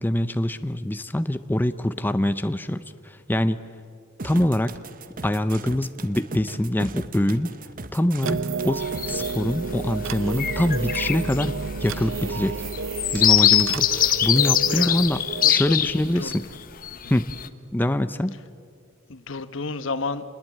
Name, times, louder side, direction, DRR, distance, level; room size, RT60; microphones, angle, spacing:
voice 1, 0.0-3.6 4.2-4.8 5.2-7.5 7.9-8.4 8.6-11.5 11.8-12.6 13.1-15.2 15.5-16.4 17.1-17.3 17.7-18.4, left 1 dB, 10° left, 10 dB, 0.6 m, -24 dB
sound 1, 4.2-9.3, right 3 dB, 45° right, 1.0 m, -38 dB
sound 2, 8.2-15.5, right 4 dB, 80° right, 0.7 m, -31 dB
sound 3, 8.8-9.4 9.9-10.1 10.3-16.4 16.8-17.5, left 11 dB, 45° left, 0.9 m, -22 dB
voice 2, 14.6-15.0 15.4-15.8 16.0-16.3 16.9-17.0 19.1-20.2, left 3 dB, 70° left, 12 dB, 1.1 m, -31 dB
27.5 x 20.5 x 8.6 m, 2.4 s
head